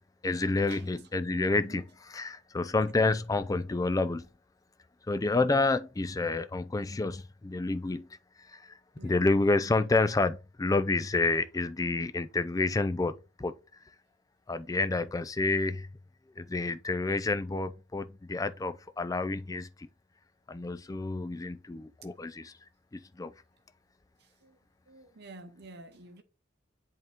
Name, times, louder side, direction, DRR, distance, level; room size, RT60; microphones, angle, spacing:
voice 1, 0.2-4.3 5.1-8.1 8.5-8.7 9.0-13.5 14.5-15.9 16.4-19.9 20.5-22.5 22.9-23.3, left 3 dB, 20° left, 0.4 m, -29 dB
voice 2, 24.2-24.6 24.9-26.2, right 2 dB, 55° right, 0.8 m, -50 dB
8.0 x 3.6 x 3.6 m
head